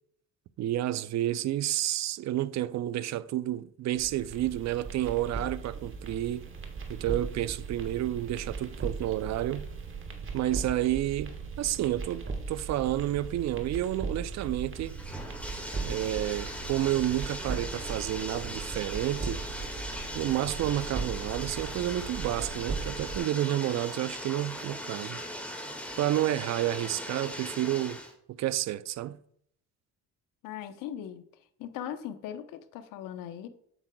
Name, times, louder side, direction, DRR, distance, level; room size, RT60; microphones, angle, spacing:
voice 1, 0.6-6.5 6.9-9.7 10.3-15.0 15.8-19.4 20.1-25.2 26.0-28.0 28.4-29.2, right 13 dB, 55° right, 0.5 m, -30 dB
sound 1, 3.9-23.2, right 4 dB, 40° right, 1.4 m, -38 dB
Bathtub (filling or washing), 14.1-28.1, equal, 5° left, 1.8 m, -39 dB
voice 2, 30.4-31.3 31.6-33.5, left 10 dB, 75° left, 0.9 m, -39 dB
8.0 x 7.4 x 2.3 m
supercardioid pair, 85°, 33 cm